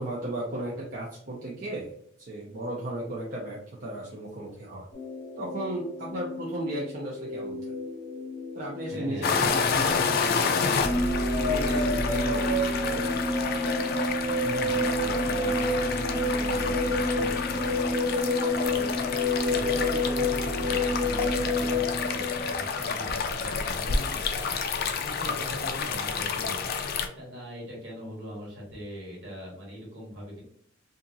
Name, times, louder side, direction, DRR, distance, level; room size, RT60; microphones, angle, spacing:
voice 1, 0.0-1.9 2.2-4.9 5.4-7.6 8.6-13.3 19.4-19.8 25.2-25.6, right 1 dB, 45° right, -4 dB, 0.5 m, -35 dB
sound 1, 4.9-22.0, left 3 dB, 35° left, 0.8 m, -38 dB
voice 2, 8.9-9.5 14.3-30.4, equal, 60° right, -3 dB, 1.3 m, -41 dB
sound 2, 9.2-27.1, left 5 dB, 50° left, 0.3 m, -30 dB
sound 3, 10.8-22.9, left 1 dB, ahead, 0.7 m, -28 dB
2.8 x 2.5 x 2.6 m, 0.67 s
head